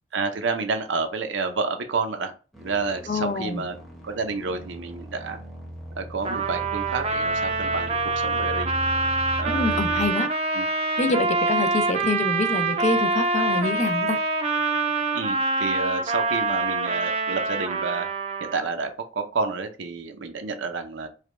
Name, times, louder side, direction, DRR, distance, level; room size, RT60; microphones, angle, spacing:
voice 1, 0.1-2.3 2.6-3.8 4.0-5.4 6.0-8.7 9.4-10.2 10.5-10.7 15.1-18.1 18.4-21.1, right 4 dB, 75° right, 6 dB, 0.6 m, -30 dB
sound 1, 2.5-10.1, equal, ahead, 0.8 m, -37 dB
voice 2, 3.1-3.6 9.5-10.3 11.0-14.2, left 3 dB, 40° left, 8 dB, 0.5 m, -26 dB
Trumpet, 6.2-18.7, right 3 dB, 35° right, 0.5 m, -25 dB
4.8 x 2.2 x 3.2 m, 0.34 s
head